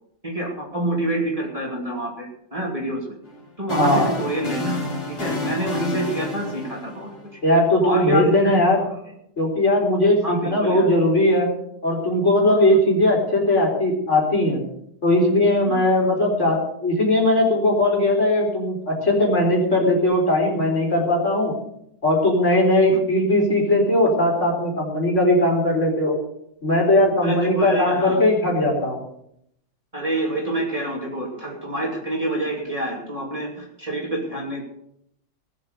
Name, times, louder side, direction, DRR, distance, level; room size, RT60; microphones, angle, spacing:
voice 1, 0.2-3.1 3.6-7.1 7.8-8.7 10.2-10.9 12.4-12.8 15.7-16.1 27.2-28.2 29.9-34.6, right 1 dB, 20° right, -2 dB, 2.9 m, -27 dB
sound 1, 3.3-7.5, left 1 dB, 65° left, 4.4 m, -30 dB
voice 2, 3.8-4.1 7.4-8.8 9.4-11.5 11.8-14.6 15.0-21.5 22.0-26.2 26.6-29.0, left 1 dB, 45° left, -1 dB, 4.7 m, -19 dB
19.0 x 7.8 x 6.7 m, 0.74 s
omnidirectional pair, 1.8 m